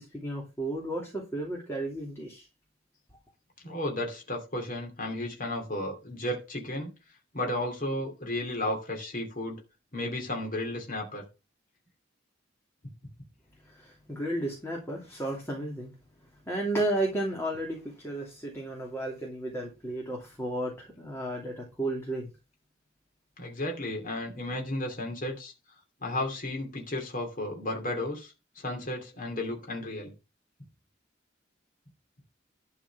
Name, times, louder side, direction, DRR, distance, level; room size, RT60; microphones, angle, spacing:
voice 1, 0.0-2.5 13.7-15.9 16.5-22.3, right 1 dB, 15° left, -1 dB, 2.7 m, -33 dB
voice 2, 3.6-6.9 7.3-9.6 9.9-11.2 23.4-25.5 26.0-30.1, left 1 dB, 45° left, 1 dB, 2.7 m, -33 dB
12.0 x 4.8 x 6.1 m, 0.28 s
head